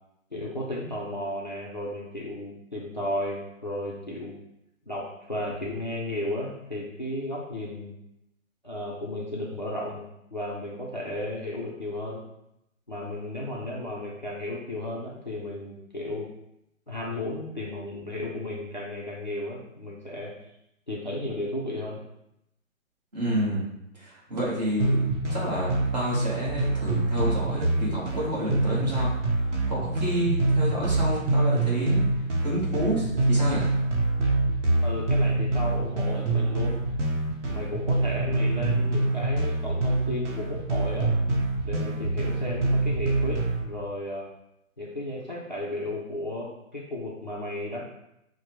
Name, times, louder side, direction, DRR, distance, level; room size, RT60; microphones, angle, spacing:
voice 1, 0.3-4.3 4.9-7.9 8.6-12.2 12.9-16.3 16.9-20.3 20.9-22.0 34.8-36.8 37.5-41.1 41.6-44.3 44.8-47.8, left 1 dB, 35° left, -4 dB, 0.4 m, -34 dB
voice 2, 23.1-23.6 24.0-25.0 25.3-29.1 29.7-32.0 32.4-33.7, right 1 dB, 30° right, -6 dB, 1.2 m, -29 dB
sound 1, 24.8-43.6, right 2 dB, 60° right, 0.9 m, -25 dB
6.2 x 2.1 x 2.9 m, 0.82 s
hypercardioid pair, 170°, 41 cm